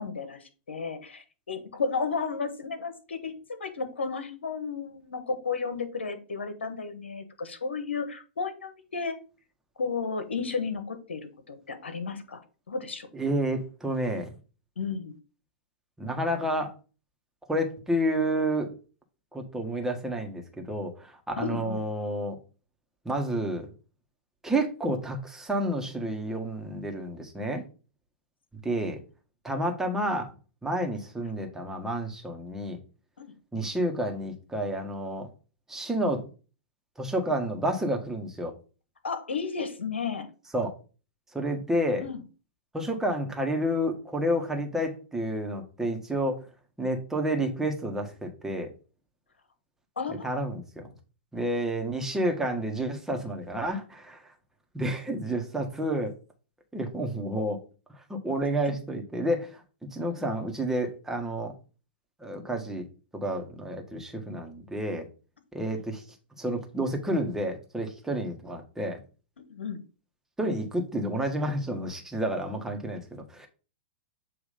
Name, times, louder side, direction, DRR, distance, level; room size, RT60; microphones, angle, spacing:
voice 1, 0.0-3.3 3.6-9.2 9.8-12.4 12.7-13.1 14.8-15.1 21.4-21.8 33.2-33.3 39.0-40.3 42.0-42.2 50.0-50.3 69.5-69.8, left 5 dB, 90° left, 9 dB, 1.3 m, -33 dB
voice 2, 13.1-14.3 16.0-16.7 17.5-18.7 19.3-22.4 23.0-23.7 24.4-27.6 28.6-29.0 29.4-30.3 30.6-32.8 33.5-35.3 35.7-36.2 37.0-38.5 40.5-40.7 41.3-42.1 42.7-46.4 46.8-48.7 50.1-50.9 51.3-54.2 54.7-56.1 56.7-57.6 58.1-59.6 59.9-61.5 62.2-62.9 63.1-65.1 65.5-66.0 66.4-69.0 70.4-73.5, right 1 dB, 5° right, 2 dB, 1.6 m, -30 dB
7.2 x 3.1 x 5.1 m, 0.35 s
hypercardioid pair, 115°, 6 cm